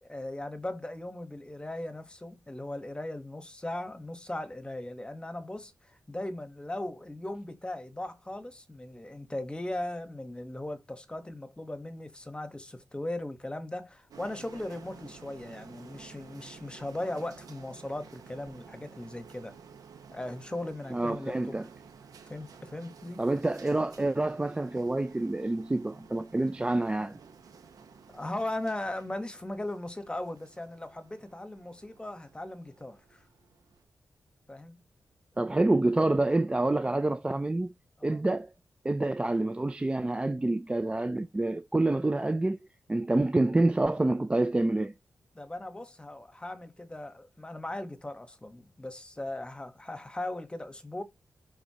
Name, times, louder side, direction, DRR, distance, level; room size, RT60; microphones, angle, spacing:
voice 1, 0.0-19.6 20.1-21.6 22.3-23.2 28.1-33.2 34.5-34.8 38.0-38.2 45.3-51.0, left 1 dB, 15° left, 1.2 m, -38 dB
sound 1, 14.1-33.8, right 6 dB, 80° right, 1.1 m, -53 dB
voice 2, 20.9-21.6 23.2-27.2 35.4-37.7 38.0-38.5 38.8-44.9, right 2 dB, 15° right, 0.4 m, -27 dB
11.0 x 4.0 x 2.9 m
cardioid pair, 80°, 6 cm